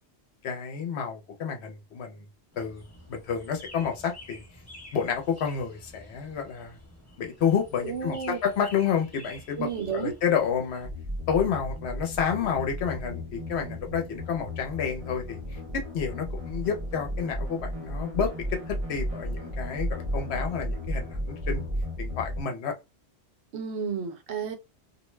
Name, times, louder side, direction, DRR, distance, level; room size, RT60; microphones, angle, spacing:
voice 1, 0.4-2.3 2.6-4.4 4.9-6.8 7.2-9.7 9.9-10.9 11.3-15.4 15.7-21.7 22.0-22.7, left 7 dB, 70° left, 1.0 m, -29 dB
sound 1, 2.5-10.9, left 1 dB, 15° left, 0.8 m, -49 dB
voice 2, 7.8-8.4 9.6-10.1 23.5-24.6, right 7 dB, 75° right, 0.9 m, -32 dB
sound 2, 10.8-22.4, equal, 35° right, 0.6 m, -34 dB
2.5 x 2.2 x 3.1 m
omnidirectional pair, 1.2 m